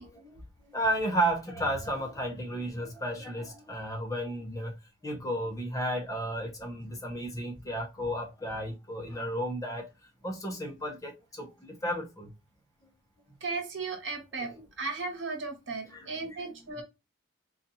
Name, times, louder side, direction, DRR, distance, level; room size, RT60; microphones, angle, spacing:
voice 1, 0.0-4.8 5.0-9.9 10.2-12.3 14.5-14.6 15.9-16.4, right 1 dB, 15° left, 0.8 m, -33 dB
voice 2, 13.4-14.5 14.8-16.8, right 3 dB, 65° right, 1.1 m, -35 dB
4.0 x 2.6 x 2.7 m
head